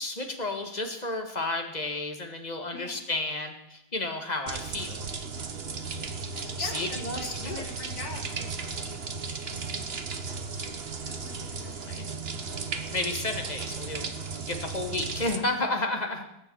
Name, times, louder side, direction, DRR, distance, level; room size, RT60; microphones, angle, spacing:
voice 1, 0.0-4.9 6.3-7.7 11.9-12.0 12.9-16.2, left 2 dB, 25° left, 4 dB, 1.6 m, -32 dB
voice 2, 2.7-3.0 6.6-8.9 9.5-9.6 11.0-12.7, left 3 dB, 65° left, 1 dB, 3.3 m, -44 dB
sound 1, 4.5-15.4, right 4 dB, 40° right, 1.1 m, -35 dB
19.0 x 6.9 x 8.4 m, 0.86 s
omnidirectional pair, 2.1 m